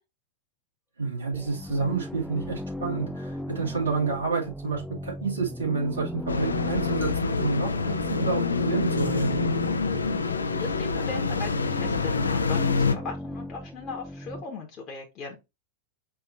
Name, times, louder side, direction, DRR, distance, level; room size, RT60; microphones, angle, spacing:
voice 1, 1.0-9.5, right 4 dB, 75° right, 2.4 m, -29 dB
sound 1, 1.3-14.4, left 1 dB, 5° left, 0.4 m, -37 dB
sound 2, 6.3-13.0, left 4 dB, 75° left, 0.5 m, -26 dB
voice 2, 10.4-15.4, left 4 dB, 35° left, 1.0 m, -38 dB
4.7 x 2.8 x 3.8 m
figure-of-eight pair, 90°, 0 cm